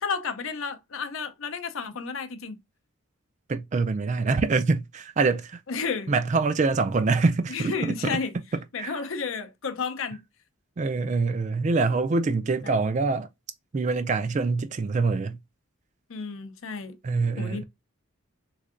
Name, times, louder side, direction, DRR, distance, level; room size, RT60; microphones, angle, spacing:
voice 1, 0.0-2.6 5.7-6.1 7.5-8.3 8.7-10.2 12.6-12.7 16.1-17.0 17.4-17.6, left 5 dB, 65° left, 0.6 m, -32 dB
voice 2, 3.5-5.6 6.1-8.2 8.8-9.0 10.8-13.3 13.7-15.4 17.0-17.6, right 3 dB, 35° right, 0.3 m, -25 dB
3.5 x 3.2 x 2.4 m
head